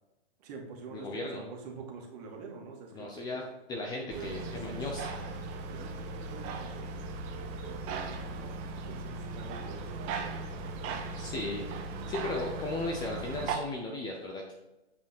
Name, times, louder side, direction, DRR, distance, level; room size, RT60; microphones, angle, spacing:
voice 1, 0.4-3.4 4.0-5.2 5.7-7.0 7.3-8.5 8.9-11.4 12.0-12.3, right 5 dB, 40° right, 0 dB, 2.0 m, -47 dB
voice 2, 0.9-1.5 2.9-3.4 3.7-5.1 11.2-11.7 12.1-14.5, left 2 dB, 15° left, 1 dB, 0.6 m, -36 dB
sound 1, 4.1-13.6, right 3 dB, 25° right, 0.7 m, -38 dB
8.4 x 5.0 x 4.3 m, 1.0 s
figure-of-eight pair, 125°, 31 cm